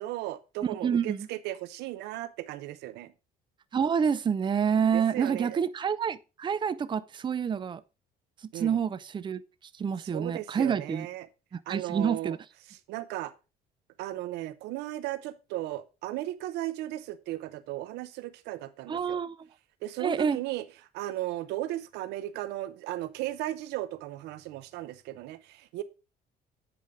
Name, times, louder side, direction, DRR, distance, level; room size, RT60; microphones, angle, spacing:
voice 1, 0.0-3.1 4.9-5.6 8.5-8.8 10.1-11.3 11.7-12.4 12.9-13.3 14.0-19.2 19.8-20.6 20.9-25.8, right 15 dB, 90° right, 0.8 m, -36 dB
voice 2, 0.8-1.3 3.7-7.8 8.5-9.4 9.7-11.1 11.5-12.4 18.9-19.4 20.0-20.4, right 7 dB, 30° right, 0.6 m, -28 dB
8.8 x 5.1 x 5.0 m
cardioid pair, 110°, 17 cm